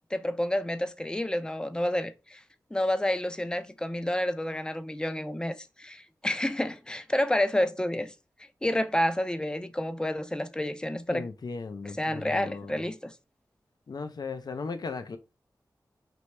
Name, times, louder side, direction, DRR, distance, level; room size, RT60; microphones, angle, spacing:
voice 1, 0.1-2.4 2.7-8.1 8.6-11.3 12.0-13.1, left 1 dB, 10° left, 0.5 m, -29 dB
voice 2, 11.1-12.8 13.9-15.2, left 4 dB, 65° left, 0.5 m, -37 dB
4.5 x 3.1 x 3.2 m
wide cardioid pair, 95°, 7 cm